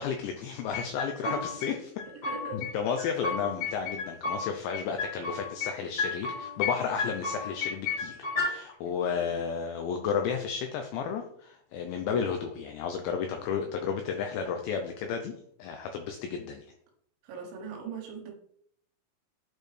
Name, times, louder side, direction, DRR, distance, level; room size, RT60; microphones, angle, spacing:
voice 1, 0.0-1.9 2.5-15.3 15.6-16.6, left 6 dB, 85° left, 5 dB, 2.5 m, -32 dB
sound 1, 0.7-1.7 2.0-2.7 3.0-4.4 4.7-5.7 6.0-6.7 7.0-8.5, left 4 dB, 50° left, 2.1 m, -32 dB
voice 2, 2.3-2.6 9.1-9.5 17.2-18.3, right 4 dB, 75° right, 1 dB, 3.4 m, -40 dB
8.4 x 4.4 x 3.2 m, 0.66 s
omnidirectional pair, 5.8 m